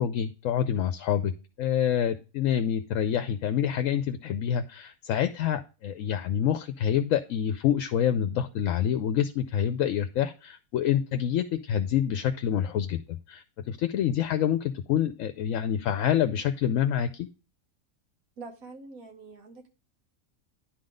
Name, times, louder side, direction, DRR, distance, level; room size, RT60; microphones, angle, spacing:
voice 1, 0.0-1.3 1.6-17.3, left 9 dB, 75° left, 9 dB, 1.0 m, -27 dB
voice 2, 18.4-19.7, right 3 dB, 85° right, 4 dB, 1.8 m, -45 dB
10.5 x 3.9 x 5.0 m, 0.32 s
omnidirectional pair, 1.4 m